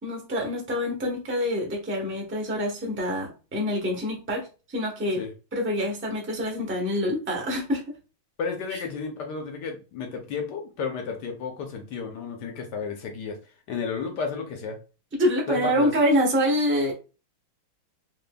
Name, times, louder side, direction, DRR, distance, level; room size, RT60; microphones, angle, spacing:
voice 1, 0.0-4.5 4.7-5.2 5.5-7.8 15.2-16.9, equal, 15° right, -1 dB, 0.4 m, -26 dB
voice 2, 8.4-13.4 13.7-14.8 15.5-15.9, left 5 dB, 65° left, 4 dB, 1.2 m, -32 dB
4.2 x 3.3 x 2.2 m, 0.32 s
omnidirectional pair, 2.4 m